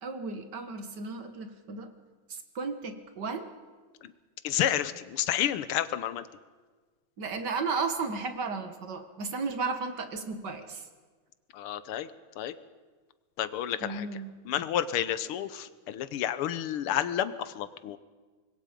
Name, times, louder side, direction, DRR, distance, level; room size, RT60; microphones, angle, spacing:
voice 1, 0.0-1.9 2.3-3.5 7.2-10.8 13.8-14.3, right 4 dB, 55° right, 7 dB, 2.0 m, -34 dB
voice 2, 4.4-6.3 11.5-12.1 12.4-12.5 13.4-14.1 14.5-18.0, left 11 dB, 90° left, 13 dB, 1.8 m, -30 dB
25.5 x 21.5 x 5.2 m, 1.4 s
omnidirectional pair, 2.3 m